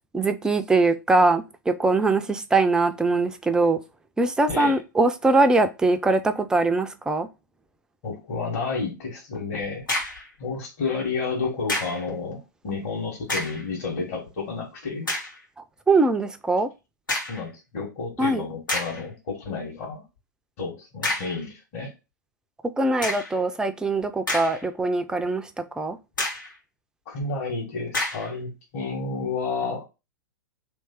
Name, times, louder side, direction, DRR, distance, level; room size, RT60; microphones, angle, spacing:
voice 1, 0.1-3.8 4.2-7.3 15.9-16.7 18.2-18.5 22.6-26.0, right 3 dB, 5° right, 8 dB, 0.4 m, -22 dB
voice 2, 4.5-4.8 8.0-9.9 10.4-15.1 17.3-20.0 20.6-21.9 26.2-26.3 27.0-29.9, left 4 dB, 45° left, -5 dB, 1.8 m, -31 dB
sound 1, 9.8-10.3 11.7-12.1 13.2-13.7 14.3-14.4 15.1-15.4 17.1-17.5 18.2-18.3 18.7-19.1 21.0-21.4 23.0-23.4 24.0-24.8 25.2-25.3 26.2-26.6 27.9-28.3, left 2 dB, 80° left, 1.6 m, -29 dB
3.2 x 3.2 x 4.4 m, 0.26 s
figure-of-eight pair, 100°, 11 cm